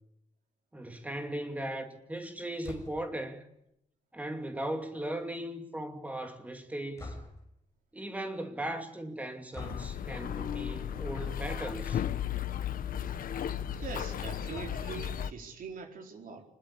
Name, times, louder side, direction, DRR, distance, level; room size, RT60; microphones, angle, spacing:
voice 1, 0.7-3.5 4.1-7.2 7.9-12.1, right 1 dB, 10° right, 2.6 m, -38 dB
sound 1, 2.6-3.2 7.0-7.6 9.5-10.0 11.2-11.4 11.8-11.9 12.2-12.3 14.5-15.1, left 2 dB, 20° left, 5.3 m, -45 dB
sound 2, 9.6-15.3, left 9 dB, 80° left, 1.0 m, -35 dB
voice 2, 13.8-16.4, right 5 dB, 75° right, 4.6 m, -43 dB
26.0 x 21.0 x 8.5 m
wide cardioid pair, 180°, 14 cm